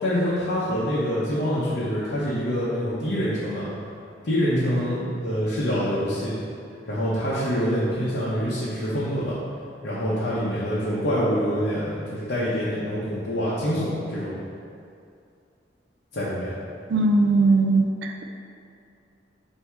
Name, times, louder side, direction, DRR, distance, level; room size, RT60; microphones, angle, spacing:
voice 1, 0.0-3.7 4.2-6.4 6.9-9.4 9.8-11.9 12.1-14.3 16.1-16.5, equal, 65° left, -9 dB, 0.7 m, -25 dB
voice 2, 16.9-18.2, right 2 dB, 80° right, 3 dB, 0.3 m, -20 dB
3.4 x 2.7 x 4.4 m, 2.4 s
head